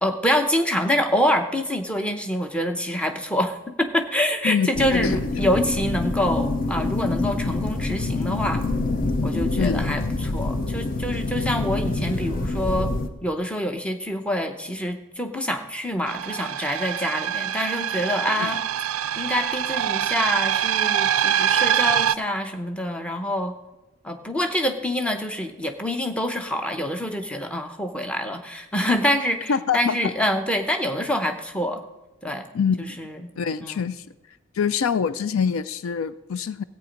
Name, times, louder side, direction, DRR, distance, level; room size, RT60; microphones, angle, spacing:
voice 1, 0.0-8.6 9.2-12.9 13.2-18.6 19.2-23.5 24.0-31.8 32.2-32.4 32.8-33.1 33.6-33.7, equal, 5° left, 6 dB, 0.7 m, -26 dB
voice 2, 4.4-5.4 9.6-10.0 18.4-18.5 29.5-30.1 32.5-33.0 33.4-34.1 34.5-36.6, left 6 dB, 75° left, 15 dB, 0.4 m, -25 dB
sound 1, 4.7-13.1, left 2 dB, 40° left, 0.7 m, -26 dB
sound 2, 16.1-22.2, right 10 dB, 85° right, 0.4 m, -24 dB
14.0 x 8.7 x 5.2 m, 1.1 s
head